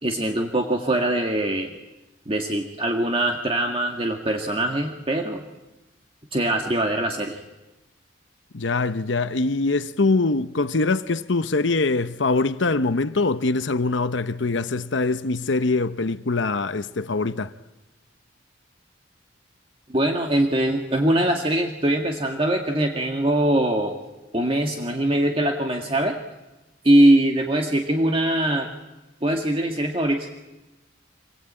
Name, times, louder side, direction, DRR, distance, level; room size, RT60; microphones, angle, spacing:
voice 1, 0.0-1.7 2.3-5.4 6.3-7.4 19.9-24.0 24.3-26.2 26.8-28.7 29.2-30.3, right 1 dB, 30° right, 1.9 m, -22 dB
voice 2, 8.5-17.5, left 3 dB, 75° left, 0.9 m, -23 dB
26.5 x 21.0 x 8.8 m
head